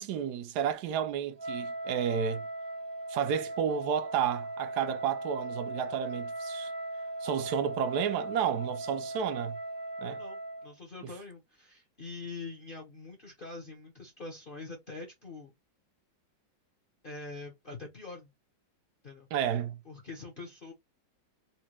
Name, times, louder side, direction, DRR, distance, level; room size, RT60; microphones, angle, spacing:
voice 1, 0.0-2.5 3.1-6.7 7.2-9.6 10.0-10.2 19.3-19.8, right 8 dB, 70° right, 1.1 m, -31 dB
Wind instrument woodwind instrument, 1.4-10.7, right 1 dB, 40° right, 0.3 m, -38 dB
voice 2, 10.2-15.5 17.0-18.3 19.0-19.3 19.8-20.7, left 3 dB, 45° left, 0.7 m, -44 dB
4.3 x 2.2 x 2.9 m
omnidirectional pair, 1.9 m